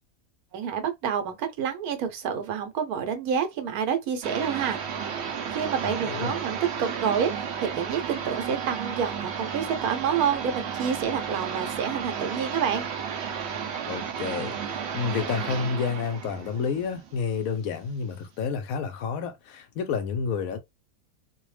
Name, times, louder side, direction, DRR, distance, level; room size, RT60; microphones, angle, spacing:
voice 1, 0.5-4.8 5.5-12.8, right 7 dB, 80° right, 1.2 m, -28 dB
sound 1, 4.2-17.7, right 7 dB, 60° right, 0.7 m, -33 dB
voice 2, 5.8-6.4 13.9-14.5 14.9-20.6, left 6 dB, 70° left, 1.0 m, -30 dB
2.7 x 2.0 x 3.2 m
omnidirectional pair, 1.6 m